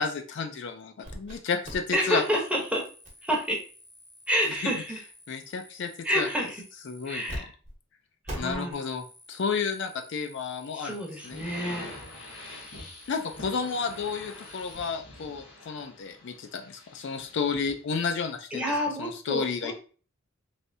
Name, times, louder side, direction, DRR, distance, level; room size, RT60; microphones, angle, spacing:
voice 1, 0.0-2.2 4.6-4.7 5.3-6.3 6.9-7.5 8.4-11.0 11.2-11.5 13.1-18.7 19.0-19.7, left 5 dB, 65° left, 6 dB, 0.4 m, -31 dB
sound 1, 1.0-1.4 1.6-7.4 7.6-7.7 8.2-14.9, equal, 35° right, 1.0 m, -46 dB
voice 2, 1.9-2.8 3.2-3.6 4.3-5.0 6.0-6.6 7.1-7.5 8.3-8.8 10.7-11.9 18.5-19.7, equal, 5° right, -1 dB, 0.8 m, -28 dB
sound 2, 11.1-17.8, left 1 dB, 80° left, 1.3 m, -45 dB
3.3 x 2.6 x 2.6 m, 0.38 s
head